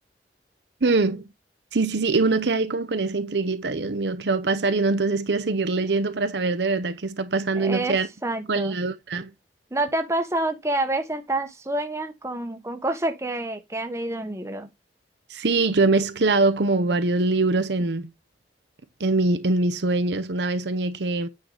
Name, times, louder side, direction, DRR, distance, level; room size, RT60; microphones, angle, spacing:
voice 1, 0.8-1.2 1.7-8.1 8.5-9.3 15.3-18.1 19.0-21.3, right 3 dB, 70° right, 0.8 m, -23 dB
voice 2, 7.6-8.8 9.7-14.7, right 2 dB, 15° right, 1.2 m, -28 dB
8.9 x 4.9 x 3.9 m
head